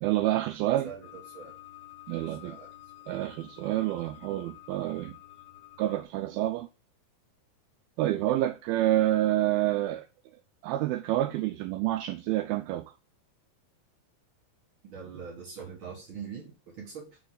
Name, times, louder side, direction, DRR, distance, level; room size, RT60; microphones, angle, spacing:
voice 1, 0.0-0.9 2.1-2.6 3.1-5.2 5.8-6.7 8.0-10.1 10.6-12.9, right 14 dB, 85° right, 2.3 m, -28 dB
voice 2, 0.8-1.5 2.1-2.7 14.8-17.2, right 6 dB, 65° right, 1.2 m, -43 dB
sound 1, 1.0-6.1, left 15 dB, 85° left, 2.8 m, -50 dB
6.3 x 4.6 x 3.9 m
omnidirectional pair, 4.5 m